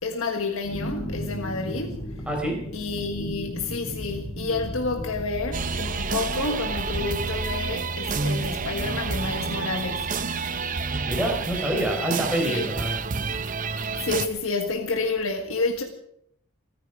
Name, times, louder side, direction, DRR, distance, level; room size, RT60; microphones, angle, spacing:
voice 1, 0.0-2.0 2.7-10.2 12.5-12.6 13.9-15.8, left 3 dB, 85° left, 1.5 m, -29 dB
sound 1, 0.6-14.3, equal, 55° left, 4.5 m, -37 dB
voice 2, 2.3-2.6 11.1-13.0, right 1 dB, 5° right, 4.9 m, -26 dB
sound 2, 5.5-14.3, right 4 dB, 40° right, 0.8 m, -29 dB
27.5 x 10.5 x 4.9 m
head